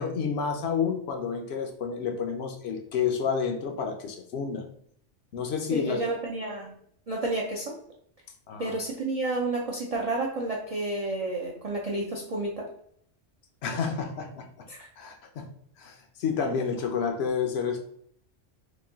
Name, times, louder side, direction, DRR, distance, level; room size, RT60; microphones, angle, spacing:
voice 1, 0.0-4.6 5.3-6.0 8.5-8.7 13.6-14.7 15.0-15.5 15.8-17.8, left 6 dB, 65° left, 4 dB, 0.8 m, -30 dB
voice 2, 5.7-6.7 7.1-7.7 8.6-12.7 14.7-14.9, right 2 dB, 55° right, -2 dB, 0.4 m, -30 dB
3.0 x 2.5 x 3.7 m, 0.64 s
omnidirectional pair, 1.3 m